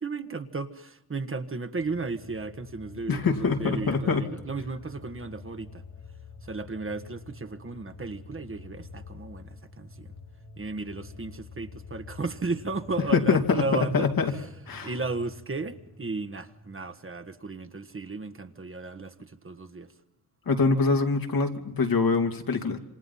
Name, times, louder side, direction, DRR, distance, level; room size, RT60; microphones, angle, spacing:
voice 1, 0.0-5.8 6.4-10.1 10.6-14.4 14.8-19.9, right 3 dB, 35° right, 8 dB, 1.6 m, -34 dB
sound 1, 1.8-19.3 19.6-19.7, left 3 dB, 85° left, 4.9 m, -48 dB
voice 2, 3.1-4.3 13.1-14.4 14.7-14.9 20.5-22.8, left 4 dB, 65° left, 3 dB, 2.8 m, -24 dB
27.5 x 25.5 x 5.7 m, 0.87 s
cardioid pair, 75°, 37 cm